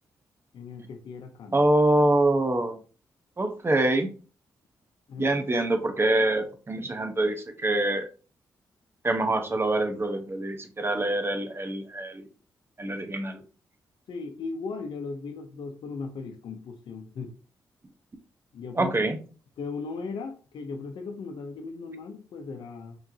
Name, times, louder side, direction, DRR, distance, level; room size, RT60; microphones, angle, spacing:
voice 1, 0.5-1.6 5.1-5.3 14.1-17.3 18.5-19.1 19.6-23.0, left 4 dB, 70° left, 0.7 m, -37 dB
voice 2, 1.5-2.8 3.4-4.1 5.2-8.1 9.0-12.3 12.8-13.4 18.8-19.2, right 2 dB, 30° right, 1.0 m, -25 dB
4.5 x 3.2 x 2.8 m
supercardioid pair, 50°, 8 cm